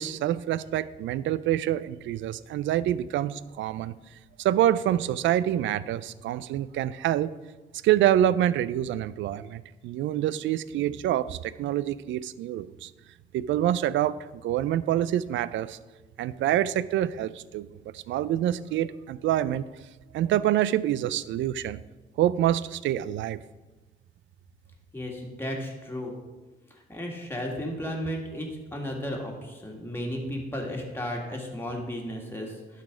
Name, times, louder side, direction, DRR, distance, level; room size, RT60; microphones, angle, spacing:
voice 1, 0.0-3.9 4.4-7.3 7.8-12.9 13.3-15.8 16.2-17.7 17.9-19.7 20.1-21.8 22.2-23.4, right 12 dB, 75° right, 17 dB, 0.4 m, -26 dB
voice 2, 24.9-26.1 26.9-32.8, equal, 10° left, -1 dB, 2.0 m, -34 dB
11.5 x 4.1 x 5.0 m, 1.2 s
cardioid pair, 90°, 20 cm